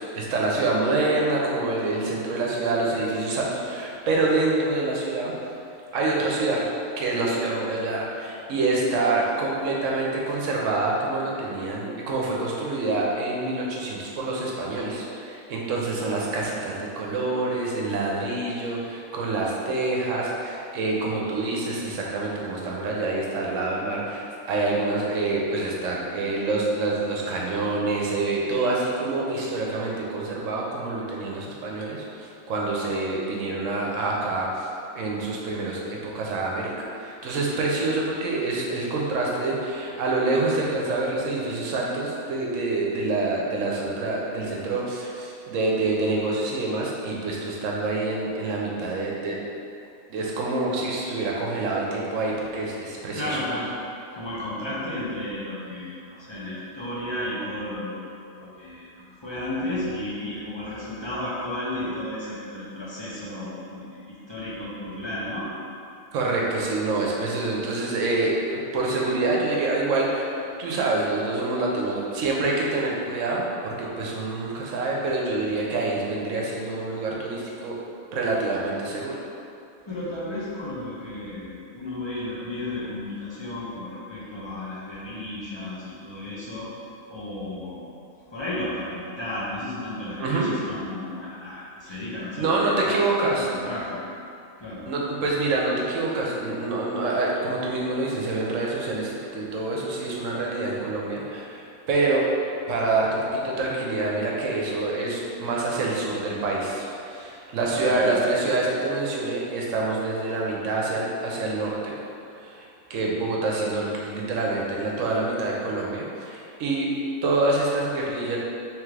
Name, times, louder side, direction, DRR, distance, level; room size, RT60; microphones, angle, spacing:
voice 1, 0.0-5.6 5.9-6.6 7.0-34.7 34.9-49.4 50.1-53.4 66.1-77.8 78.1-79.2 90.2-90.5 91.9-92.0 92.4-93.5 94.9-102.3 102.7-112.0 112.4-112.6 112.9-116.9 117.2-118.4, right 2 dB, 70° right, -2 dB, 1.0 m, -26 dB
voice 2, 53.1-53.7 54.1-58.0 58.3-58.9 59.2-65.5 79.9-86.7 87.1-87.9 88.3-93.0 93.3-94.0 94.6-94.8 107.6-108.1, left 1 dB, 30° left, -9 dB, 0.5 m, -33 dB
3.5 x 3.3 x 3.2 m, 2.6 s
omnidirectional pair, 1.4 m